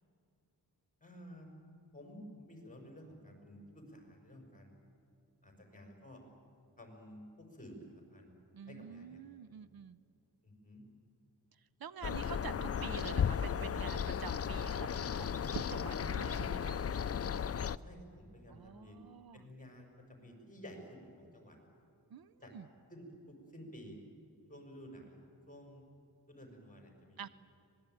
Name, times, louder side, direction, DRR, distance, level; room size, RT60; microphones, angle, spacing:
voice 1, 1.0-1.5 1.9-4.7 5.4-6.2 6.8-8.3 8.7-9.2 10.4-10.9 17.8-19.0 19.3-21.6 22.4-22.5 22.9-24.0 24.5-25.8 26.3-27.2, equal, 20° left, 2 dB, 5.7 m, -52 dB
voice 2, 8.5-10.0 11.8-16.8 18.5-19.4 22.1-22.7 27.2-27.3, right 8 dB, 65° right, 16 dB, 0.6 m, -47 dB
sound 1, 12.0-17.8, left 7 dB, 40° left, 0.5 m, -35 dB
25.0 x 20.0 x 9.2 m, 2.6 s
wide cardioid pair, 120°, 40 cm